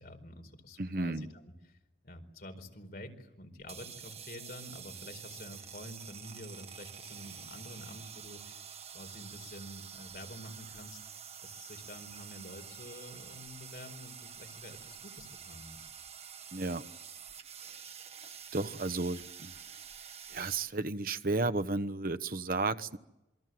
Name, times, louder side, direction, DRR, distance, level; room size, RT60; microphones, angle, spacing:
voice 1, 0.0-1.8 2.0-8.7 8.9-11.0 11.4-15.9, left 1 dB, 55° left, 6 dB, 4.7 m, -48 dB
voice 2, 0.8-1.3 16.5-16.8 18.5-19.5 20.3-23.0, right 3 dB, 50° right, 11 dB, 1.1 m, -33 dB
sound 1, 3.6-20.7, right 7 dB, 35° right, 1.7 m, -48 dB
27.5 x 23.5 x 7.8 m, 0.96 s
head